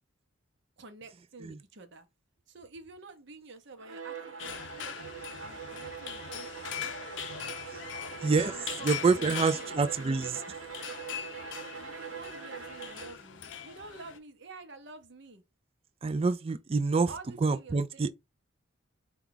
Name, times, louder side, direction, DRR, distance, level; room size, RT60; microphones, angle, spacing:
voice 1, 0.8-2.1 2.5-6.9 8.2-9.6 11.8-15.4 17.1-18.1, right 3 dB, 55° right, 0.8 m, -49 dB
Bowed string instrument, 3.8-13.3, right 5 dB, 75° right, 1.0 m, -43 dB
sound 1, 4.4-14.2, left 8 dB, 60° left, 0.5 m, -41 dB
voice 2, 8.2-8.5 8.8-10.4 16.0-17.1 17.4-18.1, right 4 dB, 25° right, 0.3 m, -27 dB
4.6 x 2.3 x 3.8 m
head